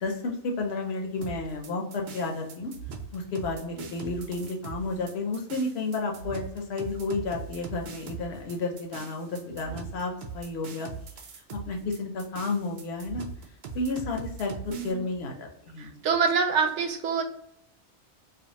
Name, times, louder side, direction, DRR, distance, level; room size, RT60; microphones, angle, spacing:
voice 1, 0.0-2.7 3.1-10.9 11.5-13.2 13.7-15.9, left 3 dB, 70° left, 2 dB, 0.8 m, -32 dB
sound 1, 1.2-14.9, right 5 dB, 60° right, 0.5 m, -41 dB
voice 2, 14.7-15.0 15.8-17.2, right 5 dB, 85° right, 5 dB, 0.9 m, -26 dB
2.5 x 2.3 x 2.8 m, 0.71 s
omnidirectional pair, 1.2 m